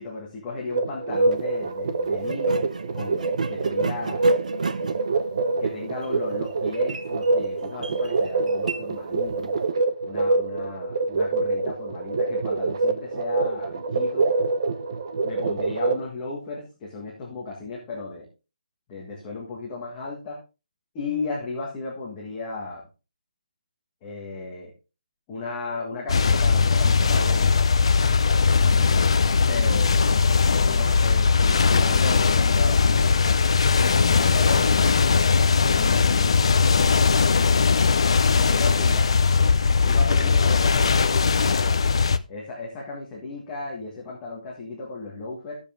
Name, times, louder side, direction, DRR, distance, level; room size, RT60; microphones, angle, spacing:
voice 1, 0.0-2.6 2.9-4.3 5.6-9.6 10.0-14.3 15.2-18.3 18.9-20.4 20.9-22.8 24.0-24.7 25.3-27.6 28.7-30.2 30.6-33.4 34.1-35.0 35.7-36.5 38.3-39.1 39.6-41.8 42.3-45.6, left 3 dB, 10° left, -4 dB, 1.6 m, -35 dB
sound 1, 0.7-16.1, right 3 dB, 30° right, 0.7 m, -25 dB
sound 2, 1.1-1.4 2.2-9.7, right 4 dB, 60° right, 0.9 m, -35 dB
sound 3, 26.1-42.2, left 5 dB, 40° left, 0.5 m, -19 dB
13.0 x 7.1 x 3.6 m, 0.30 s
hypercardioid pair, 180°, 4 cm